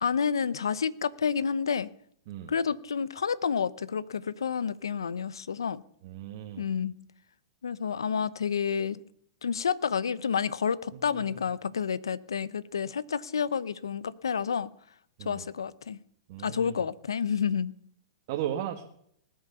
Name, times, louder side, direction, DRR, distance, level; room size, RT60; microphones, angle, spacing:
voice 1, 0.0-1.9 2.5-5.8 6.6-6.9 7.6-9.0 9.4-14.7 15.2-16.0 16.4-17.7, left 6 dB, 90° left, 0.8 m, -29 dB
voice 2, 6.0-6.7 10.9-11.5 15.2-15.5 16.3-16.9 18.3-18.8, right 11 dB, 55° right, 1.8 m, -36 dB
20.0 x 8.8 x 6.8 m
hypercardioid pair, 120°, 2 cm